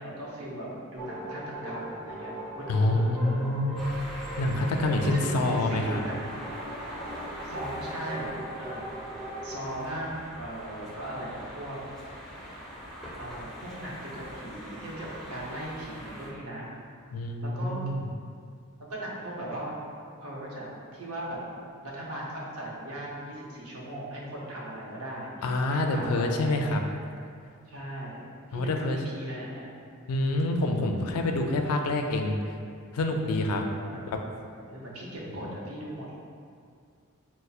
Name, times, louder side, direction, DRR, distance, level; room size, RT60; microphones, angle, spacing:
voice 1, 0.0-3.8 4.5-6.2 7.4-11.8 13.2-16.7 17.4-17.8 18.9-19.7 20.2-21.4 21.8-26.8 27.7-29.7 33.9-34.0 34.7-36.2, right 1 dB, 85° right, -5 dB, 0.8 m, -38 dB
sound 1, 1.0-9.7, right 1 dB, 20° right, 1.1 m, -40 dB
voice 2, 2.7-3.8 4.4-6.0 17.1-18.1 25.4-26.8 28.5-29.0 30.1-32.4 32.9-33.6 34.1-34.2 35.5-35.6, left 2 dB, 90° left, 3 dB, 0.4 m, -27 dB
sound 2, 3.8-16.3, equal, ahead, 0.5 m, -42 dB
5.3 x 2.0 x 2.3 m, 2.3 s
head